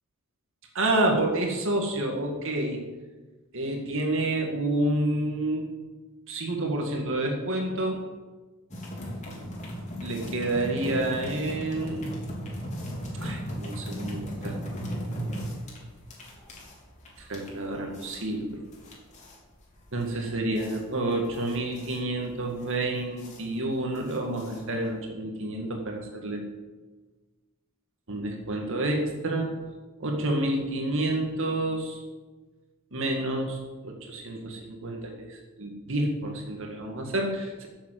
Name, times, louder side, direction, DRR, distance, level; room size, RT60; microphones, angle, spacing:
voice 1, 0.7-2.8 3.5-5.7 6.3-8.0 10.0-12.0 13.2-14.6 17.2-18.6 19.9-26.4 28.1-29.6 30.0-32.0 32.9-37.7, right 1 dB, 65° right, 1 dB, 2.0 m, -29 dB
sound 1, 8.7-25.0, equal, 35° left, 3.4 m, -37 dB
12.5 x 7.5 x 7.8 m, 1.3 s
head